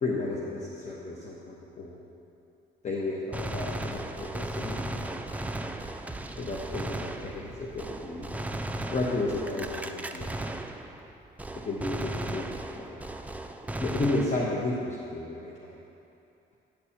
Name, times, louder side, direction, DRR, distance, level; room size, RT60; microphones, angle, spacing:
voice 1, 0.0-2.0 2.8-5.0 6.3-8.3 8.9-10.5 11.6-13.1 13.8-15.8, left 2 dB, 35° left, -3 dB, 1.0 m, -33 dB
Gunshot gunfire, 3.3-11.1 11.4-14.7, right 1 dB, 5° right, 0.4 m, -36 dB
10.0 x 4.2 x 7.2 m, 2.7 s
cardioid pair, 90°, 20 cm